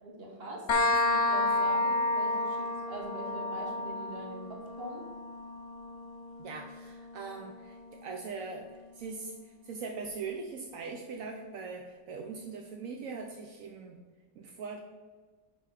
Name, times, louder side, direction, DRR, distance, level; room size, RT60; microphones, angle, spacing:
voice 1, 0.0-5.1, right 1 dB, 45° right, -1 dB, 1.8 m, -43 dB
sound 1, 0.7-8.1, left 2 dB, 60° left, 1.2 m, -31 dB
voice 2, 6.4-8.7 8.9-9.3 9.6-14.0 14.4-14.8, right 4 dB, 75° right, 2 dB, 1.1 m, -41 dB
9.8 x 3.6 x 5.0 m, 1.4 s
omnidirectional pair, 1.4 m